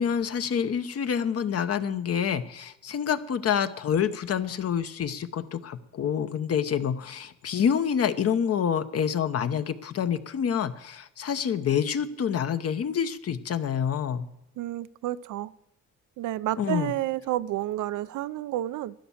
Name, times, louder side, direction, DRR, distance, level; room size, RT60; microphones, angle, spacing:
voice 1, 0.0-14.3 16.6-16.9, left 8 dB, 50° left, 1.0 m, -27 dB
voice 2, 14.6-15.5 16.2-18.9, right 14 dB, 80° right, 0.6 m, -30 dB
11.5 x 10.5 x 7.1 m
cardioid pair, 90°, 30 cm